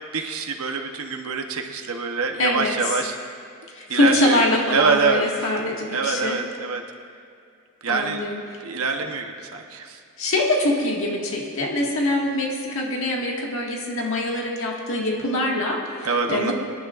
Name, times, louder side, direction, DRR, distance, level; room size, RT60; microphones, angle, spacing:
voice 1, 0.1-3.1 3.9-5.2 5.9-6.8 7.8-8.2 8.6-10.0 16.0-16.5, right 4 dB, 75° right, 3 dB, 0.9 m, -25 dB
voice 2, 2.4-3.0 3.7-6.4 7.9-8.4 10.2-16.5, left 1 dB, 60° left, -2 dB, 1.8 m, -24 dB
26.0 x 10.5 x 2.5 m, 2.3 s
head